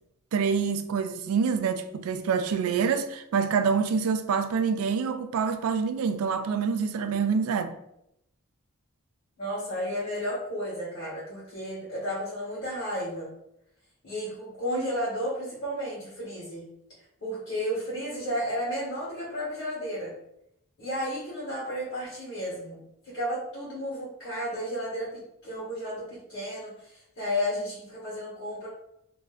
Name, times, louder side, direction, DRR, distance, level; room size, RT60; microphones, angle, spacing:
voice 1, 0.3-7.7, right 6 dB, 80° right, 0.3 m, -26 dB
voice 2, 9.4-13.3 14.0-16.7 17.2-20.1 20.8-28.7, equal, 55° left, 1.0 m, -33 dB
2.5 x 2.1 x 3.5 m
head